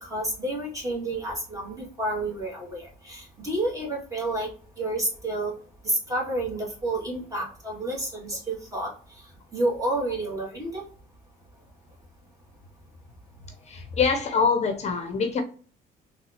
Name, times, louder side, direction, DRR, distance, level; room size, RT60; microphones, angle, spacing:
voice 1, 0.0-4.5 4.8-5.5 5.8-8.9 9.5-10.8, right 1 dB, 20° right, 2.0 m, -30 dB
voice 2, 13.6-15.4, left 5 dB, 40° left, 0.6 m, -24 dB
4.0 x 3.2 x 2.8 m
cardioid pair, 110°, 17 cm